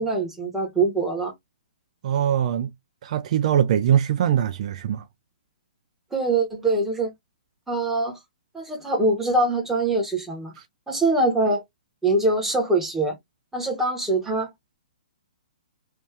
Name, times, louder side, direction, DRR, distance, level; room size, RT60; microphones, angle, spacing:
voice 1, 0.0-1.3 6.1-7.1 7.7-8.2 8.5-10.5 10.9-11.6 12.0-13.1 13.5-14.5, right 2 dB, 5° right, 1.5 m, -23 dB
voice 2, 2.0-2.7 3.0-5.0, right 9 dB, 50° right, 0.4 m, -22 dB
3.2 x 2.7 x 3.3 m
hypercardioid pair, 150°, 5 cm